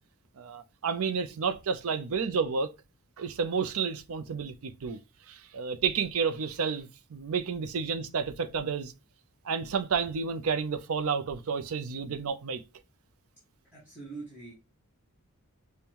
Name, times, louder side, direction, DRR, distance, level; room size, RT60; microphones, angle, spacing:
voice 1, 0.4-2.7 3.2-5.0 5.3-8.9 9.4-12.6, right 5 dB, 70° right, 0.5 m, -31 dB
voice 2, 13.7-14.5, right 3 dB, 10° right, 1.4 m, -43 dB
5.3 x 2.2 x 2.8 m
head